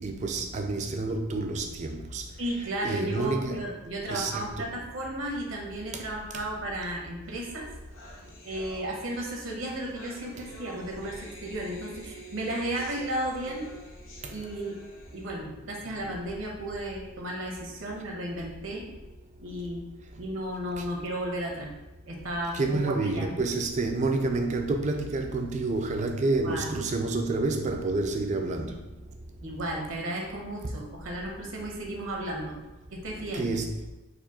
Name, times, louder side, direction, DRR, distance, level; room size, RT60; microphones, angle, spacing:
voice 1, 0.0-2.2 2.8-3.6 4.1-4.7 20.8-20.9 22.5-28.8 33.3-33.8, right 3 dB, 35° right, 0.3 m, -29 dB
voice 2, 2.4-7.7 8.4-13.7 14.3-14.7 15.1-18.8 19.4-19.8 20.2-21.7 22.1-23.3 26.4-26.7 29.4-32.6 32.9-33.5, right 1 dB, 65° right, 0.8 m, -34 dB
sound 1, 7.6-15.2, right 1 dB, 60° left, 0.8 m, -49 dB
4.2 x 2.6 x 2.8 m
head